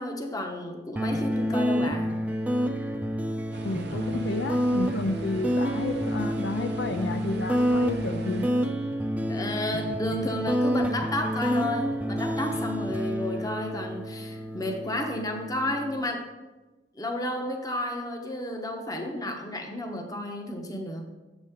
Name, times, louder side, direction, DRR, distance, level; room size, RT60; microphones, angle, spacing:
voice 1, 0.0-2.2 9.3-16.2 17.0-21.0, left 1 dB, 20° left, 4 dB, 0.8 m, -32 dB
sound 1, 0.9-16.0, equal, 10° right, 0.4 m, -28 dB
sound 2, 3.5-8.5, right 3 dB, 65° right, 0.6 m, -43 dB
voice 2, 3.6-8.4, left 2 dB, 75° left, 8 dB, 0.5 m, -31 dB
7.3 x 7.1 x 3.6 m, 1.1 s
head